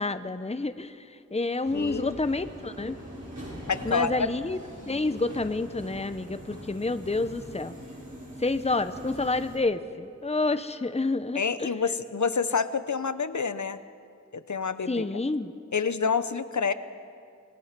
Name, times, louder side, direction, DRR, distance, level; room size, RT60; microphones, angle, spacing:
voice 1, 0.0-3.0 3.8-4.6 4.9-7.7 8.4-11.7 14.9-15.5, left 3 dB, 20° left, 11 dB, 0.8 m, -29 dB
voice 2, 1.7-2.2 3.7-4.3 11.3-13.8 14.3-15.1 15.7-16.7, left 5 dB, 75° left, 12 dB, 0.9 m, -28 dB
Subway metro underground, 1.7-9.6, equal, 75° right, 6.9 m, -42 dB
27.0 x 19.5 x 6.0 m, 2.4 s
wide cardioid pair, 50°, 29 cm